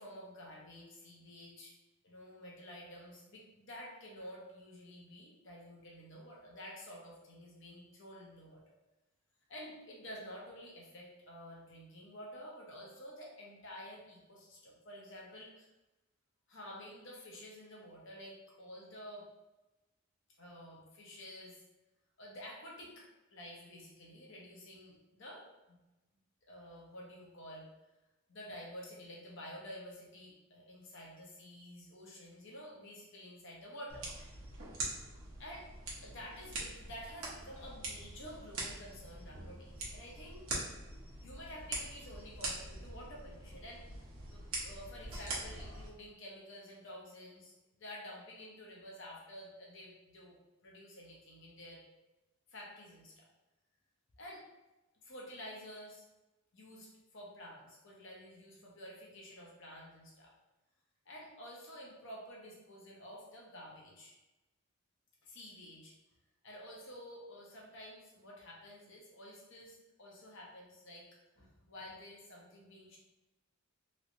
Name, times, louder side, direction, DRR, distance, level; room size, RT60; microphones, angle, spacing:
voice 1, 0.0-1.7 2.0-8.6 9.5-15.7 16.5-19.3 20.4-21.6 22.2-25.8 26.5-27.7 28.3-34.0 35.4-35.7 36.0-40.6 41.2-43.8 44.3-50.4 50.6-51.8 52.5-53.3 54.2-54.4 55.0-56.0 56.5-60.3 61.1-64.1 65.2-65.9 66.4-71.1 71.4-73.0, equal, 60° left, -3 dB, 0.8 m, -50 dB
sound 1, 33.9-45.9, right 2 dB, 65° right, 0.9 m, -43 dB
3.2 x 3.0 x 2.6 m, 1.0 s
head